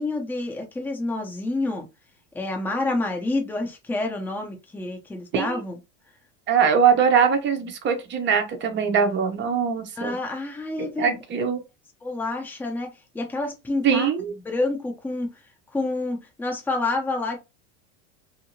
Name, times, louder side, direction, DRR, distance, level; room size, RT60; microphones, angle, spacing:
voice 1, 0.0-1.9 2.3-5.8 10.0-11.2 12.0-15.3 15.7-17.4, left 2 dB, 5° left, 0.6 m, -28 dB
voice 2, 6.5-10.1 11.0-11.6 13.8-14.3, right 7 dB, 30° right, 0.8 m, -22 dB
2.8 x 2.8 x 2.6 m
supercardioid pair, 130°, 37 cm